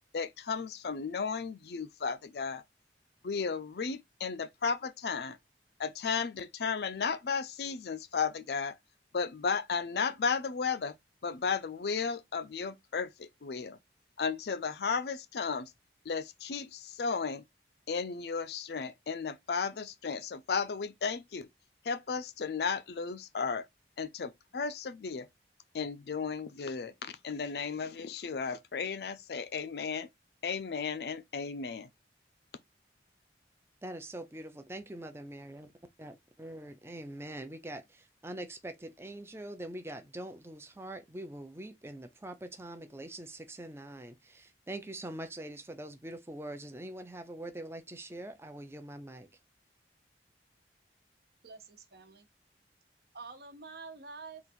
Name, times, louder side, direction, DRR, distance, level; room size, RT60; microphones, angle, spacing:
voice 1, 0.1-2.6 3.2-5.4 5.8-8.8 9.1-11.0 11.2-13.8 14.2-15.7 16.0-17.4 17.9-21.5 21.8-23.7 24.0-25.3 25.7-30.1 30.4-31.9, left 5 dB, 65° left, 0.5 m, -34 dB
voice 2, 33.8-35.7 36.0-49.3, right 1 dB, 15° right, 0.5 m, -43 dB
voice 3, 51.4-52.3 53.1-54.4, right 4 dB, 60° right, 0.9 m, -47 dB
3.9 x 2.4 x 4.3 m
head